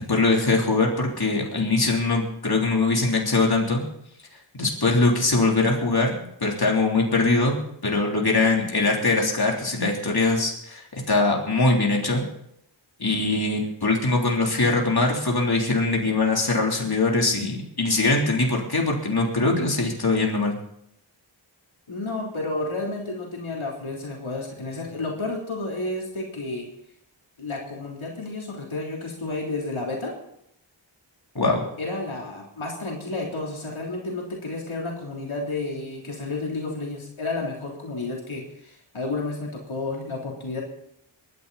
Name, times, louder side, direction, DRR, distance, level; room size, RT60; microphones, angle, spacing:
voice 1, 0.1-3.8 4.5-7.6 7.8-12.2 13.0-20.6 31.3-31.6, left 3 dB, 50° left, -1 dB, 3.4 m, -22 dB
voice 2, 21.9-26.7 27.4-30.1 31.8-40.6, left 2 dB, 85° left, -2 dB, 3.4 m, -31 dB
22.5 x 10.5 x 4.1 m, 0.76 s
cardioid pair, 40°, 47 cm